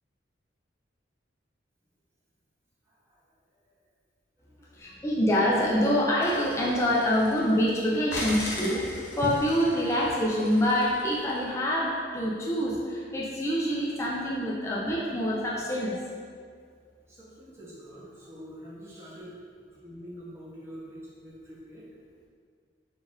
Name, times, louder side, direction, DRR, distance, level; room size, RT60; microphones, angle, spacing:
voice 1, 2.8-3.2 3.6-3.7 4.4-5.3 17.1-19.3 19.6-21.9, equal, 15° right, -8 dB, 0.7 m, -46 dB
voice 2, 4.7-15.9, equal, 15° left, -5 dB, 0.3 m, -26 dB
sound 1, 6.2-7.7 8.1-11.4, left 1 dB, 65° left, 0.8 m, -39 dB
4.0 x 2.4 x 3.7 m, 2.1 s
head